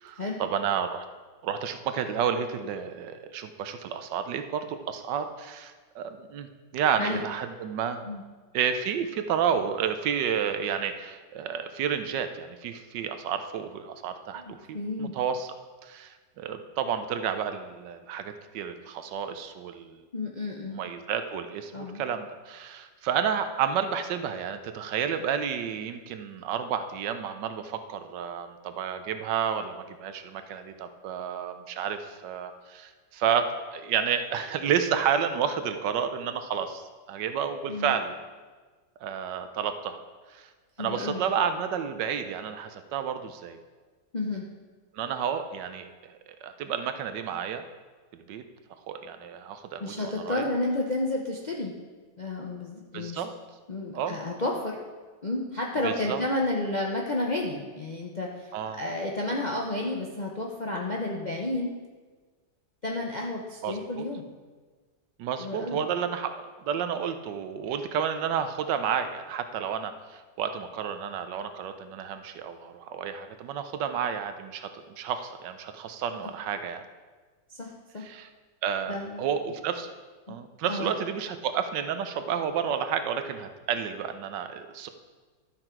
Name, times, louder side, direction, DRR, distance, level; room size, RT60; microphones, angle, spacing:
voice 1, 0.0-1.0 1.4-6.5 6.7-8.0 8.5-15.6 15.8-20.1 20.7-38.2 39.0-40.0 40.3-40.5 40.8-43.6 44.9-46.1 46.4-47.6 48.1-48.4 48.9-50.5 52.9-53.3 53.9-54.2 55.8-56.2 58.5-58.8 63.6-64.1 65.2-76.8 78.0-78.3 78.6-79.9 80.3-84.9, right 8 dB, 75° right, 9 dB, 1.3 m, -31 dB
voice 2, 14.3-15.2 20.1-20.8 21.7-22.0 37.7-37.9 40.8-41.2 44.1-44.4 49.8-51.7 52.2-53.2 53.7-54.8 55.2-58.5 58.8-61.7 62.8-64.2 65.4-65.8 77.5-78.1 78.9-79.2 80.3-80.4 80.7-80.9, left 2 dB, 45° left, -1 dB, 0.5 m, -31 dB
11.5 x 5.9 x 4.5 m, 1.4 s
omnidirectional pair, 2.0 m